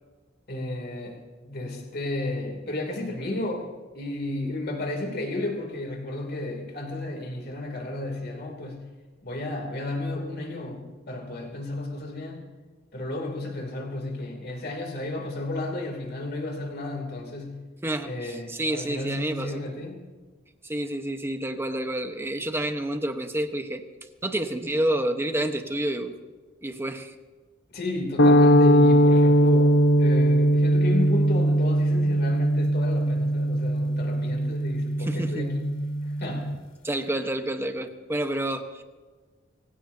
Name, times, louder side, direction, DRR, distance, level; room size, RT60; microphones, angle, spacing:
voice 1, 0.5-3.7 3.9-8.8 9.2-12.5 12.9-17.6 18.0-20.0 27.7-35.7 36.0-36.5, left 2 dB, 55° left, 1 dB, 3.0 m, -33 dB
voice 2, 17.8-19.6 20.6-23.8 24.2-26.2 26.6-27.1 35.0-35.5 36.8-38.8, right 1 dB, 15° right, 6 dB, 1.1 m, -29 dB
sound 1, 28.2-36.6, equal, 70° left, 0.9 m, -20 dB
25.0 x 16.0 x 2.8 m, 1.3 s
head